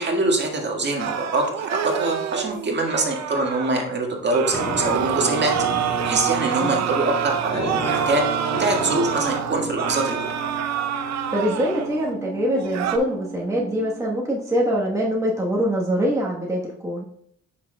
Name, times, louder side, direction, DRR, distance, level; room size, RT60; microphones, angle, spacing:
voice 1, 0.0-5.5 6.0-8.2 8.6-10.3, right 2 dB, 35° right, 1 dB, 1.7 m, -24 dB
sound 1, 1.0-3.7 4.3-12.1 12.5-13.0, right 9 dB, 60° right, 0.6 m, -27 dB
Musical instrument, 4.5-14.3, right 2 dB, 20° left, 2.9 m, -32 dB
voice 2, 11.3-17.0, equal, 10° right, -3 dB, 1.2 m, -24 dB
9.1 x 6.1 x 2.3 m, 0.67 s
cardioid pair, 90°, 30 cm